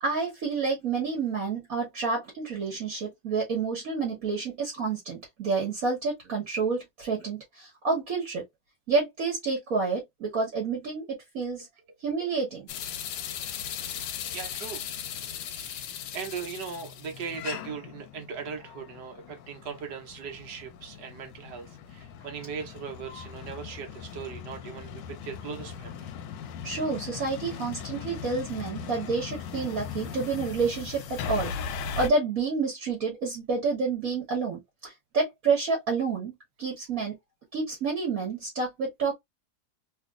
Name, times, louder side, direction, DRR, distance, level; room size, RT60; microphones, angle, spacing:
voice 1, 0.0-8.4 8.9-11.1 11.3-11.7 12.0-12.7 26.6-36.3 36.6-37.2 37.5-39.1, right 4 dB, 50° right, 1.4 m, -29 dB
sound 1, 12.7-32.1, left 7 dB, 75° left, 1.2 m, -38 dB
voice 2, 13.9-14.8 15.5-26.0, right 6 dB, 65° right, 1.4 m, -39 dB
3.3 x 2.9 x 2.4 m
omnidirectional pair, 2.1 m